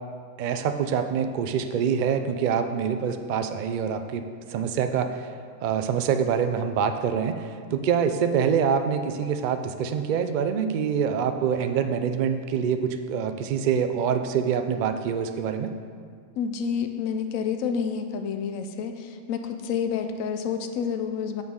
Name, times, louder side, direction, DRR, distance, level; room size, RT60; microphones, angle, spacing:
voice 1, 0.4-4.2 4.5-5.3 5.6-15.7, right 7 dB, 75° right, 8 dB, 0.4 m, -25 dB
voice 2, 16.4-21.4, left 7 dB, 90° left, 7 dB, 1.0 m, -29 dB
9.2 x 6.2 x 3.6 m, 2.1 s
omnidirectional pair, 1.3 m